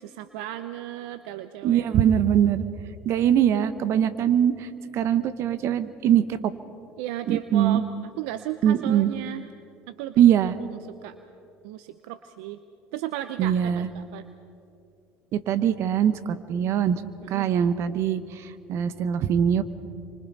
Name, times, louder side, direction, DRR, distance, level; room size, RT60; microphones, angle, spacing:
voice 1, 0.0-1.9 7.0-9.5 9.9-10.2 10.6-11.1 11.6-12.6 12.9-14.2 17.2-17.5, right 12 dB, 80° right, 11 dB, 0.7 m, -35 dB
voice 2, 1.6-2.6 3.0-4.7 4.9-6.4 7.3-7.8 8.6-9.1 10.2-10.5 13.4-13.9 15.3-17.0 17.3-18.2 18.7-19.6, right 9 dB, 60° right, 13 dB, 1.1 m, -22 dB
28.5 x 25.0 x 4.2 m, 2.6 s
hypercardioid pair, 80°, 5 cm